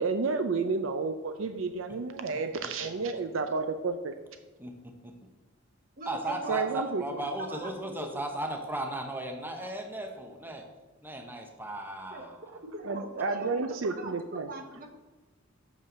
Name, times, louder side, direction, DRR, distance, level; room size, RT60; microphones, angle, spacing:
voice 1, 0.0-4.2 6.5-7.2 12.8-14.5, right 4 dB, 65° right, 8 dB, 0.5 m, -31 dB
voice 2, 4.6-5.1 6.1-10.6 11.0-12.4, right 1 dB, 10° right, 3 dB, 0.9 m, -36 dB
voice 3, 6.0-8.2 12.1-12.3 12.6-14.9, right 2 dB, 45° right, 4 dB, 1.1 m, -43 dB
6.8 x 5.4 x 6.1 m, 1.2 s
head